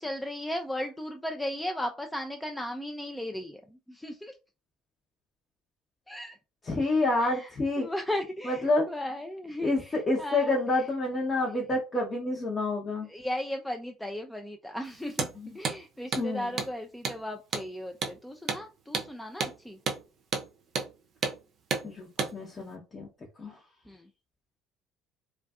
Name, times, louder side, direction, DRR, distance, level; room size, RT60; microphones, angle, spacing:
voice 1, 0.0-4.4 6.1-6.4 7.2-10.6 13.1-15.3 15.5-19.8 23.9-24.1, left 1 dB, 5° left, 4 dB, 0.4 m, -36 dB
voice 2, 6.6-7.9 8.4-8.9 9.6-13.1 15.4-15.5 16.1-16.6 21.8-23.1 23.4-23.5, left 2 dB, 30° left, -3 dB, 0.8 m, -28 dB
Hammer, 15.1-15.3 15.6-15.8 16.1-16.3 16.6-16.7 17.0-17.2 17.5-17.7 18.0-18.2 18.5-18.6 18.9-19.1 19.4-19.5 19.9-20.0 20.3-20.5 20.8-20.9 21.2-21.4 21.7-21.9 22.2-22.3, right 5 dB, 50° right, 0.5 m, -30 dB
2.4 x 2.2 x 2.3 m, 0.30 s
hypercardioid pair, 65°, 0 cm